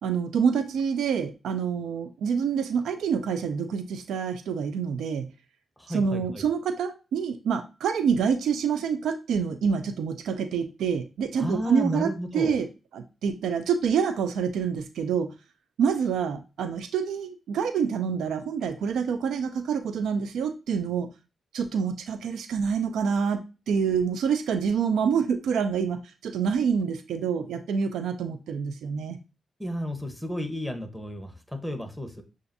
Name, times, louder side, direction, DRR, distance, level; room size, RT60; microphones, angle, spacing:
voice 1, 0.0-5.3 5.9-12.1 12.3-12.7 12.9-15.3 15.8-21.1 21.5-29.2, right 6 dB, 85° right, 9 dB, 0.4 m, -27 dB
voice 2, 5.8-6.4 11.4-12.5 29.6-32.2, equal, ahead, 6 dB, 1.0 m, -32 dB
6.7 x 2.5 x 2.6 m, 0.31 s
cardioid pair, 55°, 0 cm